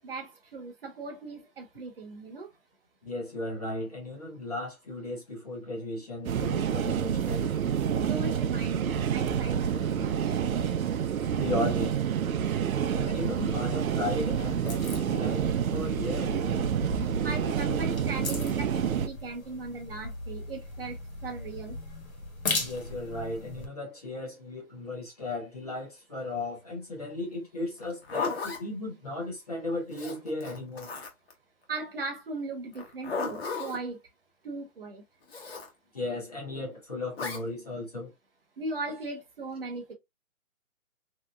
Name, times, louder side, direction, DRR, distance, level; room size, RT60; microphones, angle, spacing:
voice 1, 0.0-2.5 8.0-10.4 17.2-21.8 31.7-34.0 34.4-35.0 38.6-39.9, right 3 dB, 45° right, 0.8 m, -38 dB
voice 2, 3.0-7.5 11.4-12.0 12.9-16.4 22.6-30.9 35.9-38.1, left 2 dB, 30° left, 0.7 m, -35 dB
sound 1, 6.2-19.1, right 8 dB, 85° right, 0.6 m, -28 dB
sound 2, 13.1-23.7, left 3 dB, 80° left, 1.4 m, -39 dB
Zipper (clothing), 27.8-28.6 29.9-31.3 32.7-33.8 35.3-35.7 37.1-37.4, left 4 dB, 50° left, 1.1 m, -35 dB
3.2 x 2.8 x 2.3 m
hypercardioid pair, 170°, 41 cm